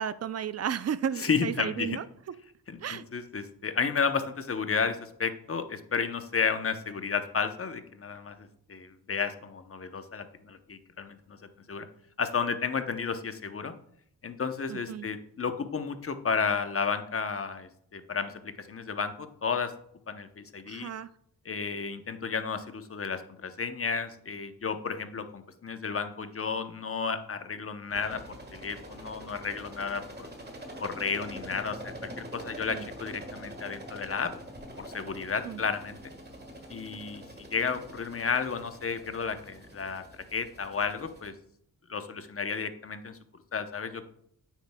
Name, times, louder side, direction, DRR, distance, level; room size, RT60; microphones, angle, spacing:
voice 1, 0.0-2.0 2.8-3.0 14.7-15.1 20.7-21.1 32.7-32.9 35.4-35.6, right 8 dB, 45° right, 16 dB, 0.4 m, -33 dB
voice 2, 1.2-2.0 2.7-11.4 11.7-11.9 12.2-13.7 14.2-19.7 20.1-20.9 21.4-30.3 30.8-34.3 34.8-36.0 36.7-37.2 37.5-40.0 40.3-41.3 41.9-43.2 43.5-44.0, left 5 dB, 35° left, 9 dB, 0.8 m, -32 dB
sound 1, 27.9-41.3, equal, 25° right, 1.5 m, -45 dB
9.0 x 7.4 x 2.2 m, 0.70 s
cardioid pair, 80°, 38 cm